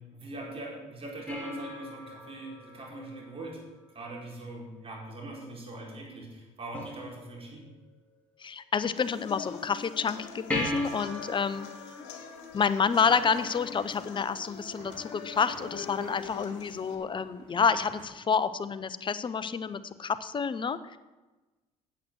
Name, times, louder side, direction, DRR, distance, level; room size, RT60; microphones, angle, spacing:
voice 1, 0.0-3.6 3.9-7.7, right 2 dB, 40° right, -2 dB, 4.5 m, -42 dB
sound 1, 1.3-3.9 6.7-7.7 10.5-13.4 16.5-16.6, left 1 dB, 10° left, 3.7 m, -38 dB
voice 2, 8.4-11.7 12.5-21.0, left 6 dB, 30° left, 13 dB, 0.8 m, -29 dB
sound 2, 9.0-16.9, left 7 dB, 80° left, 1.4 m, -44 dB
sound 3, 12.7-18.1, right 3 dB, 55° right, 4.4 m, -52 dB
8.5 x 7.9 x 7.8 m, 1.2 s
hypercardioid pair, 70°, 15 cm